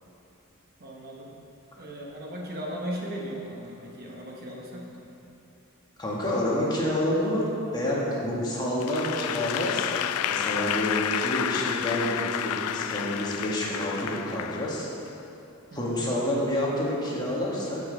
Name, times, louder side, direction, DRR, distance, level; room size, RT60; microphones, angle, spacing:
voice 1, 0.8-1.3 1.8-5.0 15.7-16.1, equal, 45° right, -2 dB, 1.1 m, -37 dB
voice 2, 6.0-7.5 7.7-14.9 15.7-17.8, left 1 dB, 20° left, -5 dB, 1.5 m, -28 dB
Applause / Crowd, 8.8-15.1, left 10 dB, 85° left, 0.3 m, -30 dB
14.0 x 5.5 x 3.9 m, 2.8 s
head